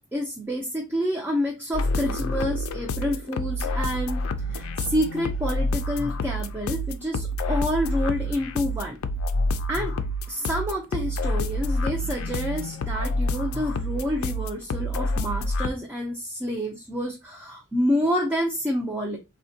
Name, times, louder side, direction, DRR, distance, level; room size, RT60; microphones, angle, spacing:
voice 1, 0.0-4.2 4.5-9.0 9.7-10.0 10.3-19.2, equal, 10° right, 0.4 m, -28 dB
sound 1, 1.7-15.7, left 1 dB, 75° left, 0.4 m, -28 dB
3.5 x 2.1 x 2.6 m
head